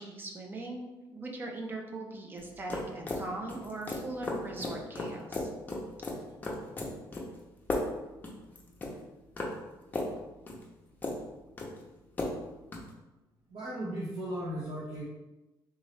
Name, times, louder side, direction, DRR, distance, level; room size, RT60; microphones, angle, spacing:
voice 1, 0.0-5.5, right 2 dB, 25° right, 1 dB, 0.6 m, -40 dB
sound 1, 2.4-12.9, left 2 dB, 20° left, 0.7 m, -37 dB
voice 2, 13.5-15.0, right 1 dB, 60° right, -8 dB, 1.0 m, -36 dB
3.6 x 2.9 x 3.2 m, 1.0 s
cardioid pair, 140°, 8 cm